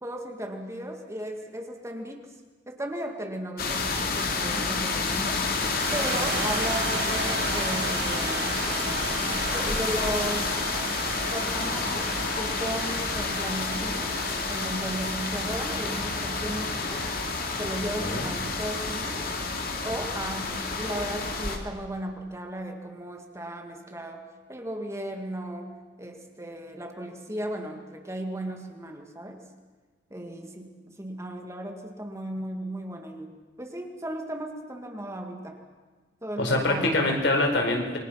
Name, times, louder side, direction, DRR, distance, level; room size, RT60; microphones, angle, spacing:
voice 1, 0.0-2.2 2.7-5.4 5.9-8.5 9.5-10.5 11.3-14.2 14.5-17.1 17.5-19.3 19.8-24.2 24.5-29.4 30.1-35.6 36.2-37.0, right 1 dB, 15° right, 3 dB, 2.4 m, -35 dB
sound 1, 3.6-21.6, left 4 dB, 55° left, 2.9 m, -29 dB
sound 2, 5.5-20.0, right 5 dB, 70° right, 1.7 m, -37 dB
voice 2, 36.4-38.0, left 2 dB, 75° left, 2 dB, 4.8 m, -24 dB
28.0 x 23.0 x 6.0 m, 1.4 s
head